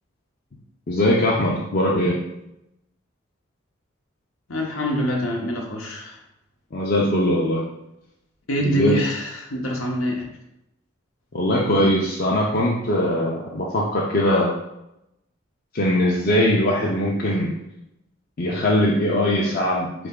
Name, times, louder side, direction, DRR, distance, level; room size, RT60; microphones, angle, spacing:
voice 1, 0.9-2.2 6.7-7.6 8.6-9.0 11.3-14.5 15.7-17.5 18.4-19.9, left 1 dB, 45° left, -4 dB, 0.6 m, -21 dB
voice 2, 4.5-6.2 8.5-10.2, equal, 90° left, -1 dB, 1.0 m, -25 dB
4.1 x 3.4 x 3.7 m, 0.86 s
head